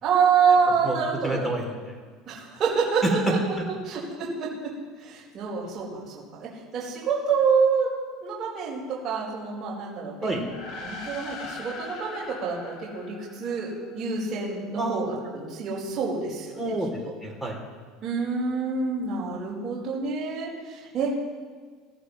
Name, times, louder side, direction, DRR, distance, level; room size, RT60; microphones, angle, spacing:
voice 1, 0.0-1.5 2.2-3.4 3.6-4.7 5.0-7.9 8.2-10.5 10.8-16.7 18.0-21.2, right 5 dB, 25° right, -8 dB, 4.7 m, -27 dB
voice 2, 1.2-1.9 3.0-3.1 10.2-10.4 14.8-15.0 16.6-17.6, right 2 dB, 5° left, 0 dB, 3.1 m, -28 dB
sound 1, 10.4-14.1, left 3 dB, 60° left, 2.2 m, -40 dB
24.0 x 15.0 x 3.2 m, 1.5 s
cardioid pair, 150°, 0 cm